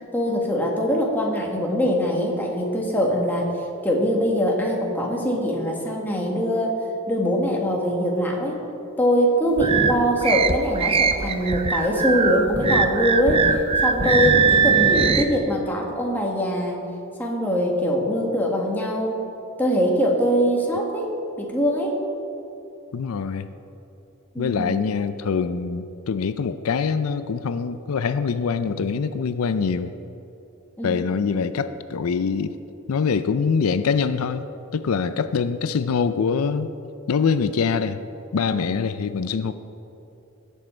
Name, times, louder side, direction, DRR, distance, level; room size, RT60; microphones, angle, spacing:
voice 1, 0.1-3.5 3.8-6.8 7.1-8.6 9.0-16.8 17.2-19.2 19.6-22.0 24.3-24.9 30.8-31.0 38.5-38.7, equal, 10° left, -1 dB, 1.5 m, -23 dB
sound 1, 9.6-15.2, right 5 dB, 25° right, 0.4 m, -21 dB
voice 2, 22.9-23.5 24.4-29.9 30.8-32.6 32.9-34.4 34.7-36.7 37.1-38.0 38.3-39.5, left 5 dB, 90° left, 12 dB, 0.4 m, -24 dB
17.0 x 7.3 x 4.4 m, 2.9 s
head